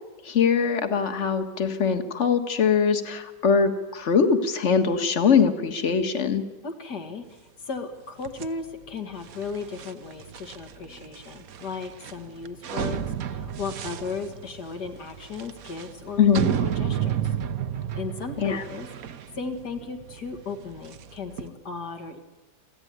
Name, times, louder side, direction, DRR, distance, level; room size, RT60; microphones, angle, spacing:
voice 1, 0.2-6.4 16.2-16.5 18.4-18.6, left 6 dB, 45° left, 7 dB, 1.8 m, -22 dB
voice 2, 6.6-16.3 16.6-17.3 17.9-18.9 19.3-22.2, left 4 dB, 70° left, 5 dB, 2.7 m, -36 dB
sound 1, 8.2-21.5, right 9 dB, 60° right, 1.3 m, -32 dB
27.0 x 15.5 x 9.5 m, 1.2 s
omnidirectional pair, 1.9 m